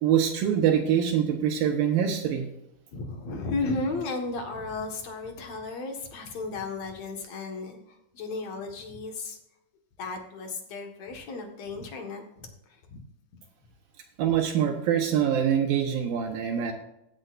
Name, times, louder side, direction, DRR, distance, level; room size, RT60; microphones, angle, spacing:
voice 1, 0.0-2.4 14.2-16.7, right 9 dB, 75° right, 2 dB, 2.7 m, -24 dB
voice 2, 2.9-9.4 10.0-13.0, left 3 dB, 55° left, 4 dB, 2.4 m, -34 dB
16.0 x 9.0 x 2.5 m, 0.83 s
omnidirectional pair, 4.3 m